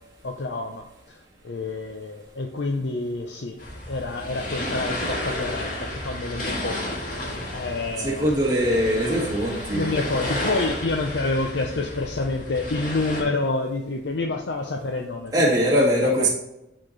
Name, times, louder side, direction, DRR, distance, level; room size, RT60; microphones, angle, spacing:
voice 1, 0.2-1.2 1.4-3.6 3.9-8.3 9.7-15.6 16.0-16.3, left 3 dB, 65° left, 2 dB, 0.6 m, -28 dB
sound 1, 3.6-13.2, left 1 dB, 45° left, 1.8 m, -32 dB
voice 2, 8.0-9.9 15.3-16.3, equal, 20° right, -7 dB, 2.0 m, -21 dB
12.0 x 4.2 x 3.3 m, 0.90 s
head